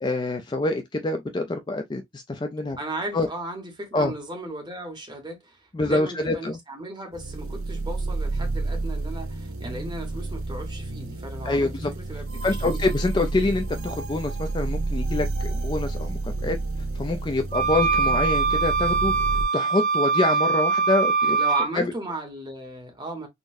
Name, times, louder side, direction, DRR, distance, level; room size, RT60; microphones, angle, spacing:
voice 1, 0.0-2.8 3.1-3.3 3.9-4.1 5.7-6.6 11.4-11.9 12.4-16.6 16.9-19.1 19.5-21.4 21.7-21.9, left 2 dB, 20° left, 0.3 m, -26 dB
voice 2, 2.8-12.9 21.4-23.3, right 1 dB, 20° right, 0.9 m, -36 dB
sound 1, 7.1-19.4, right 2 dB, 85° right, 0.8 m, -30 dB
sound 2, 17.5-21.7, right 5 dB, 40° right, 0.5 m, -23 dB
3.8 x 2.1 x 2.5 m
head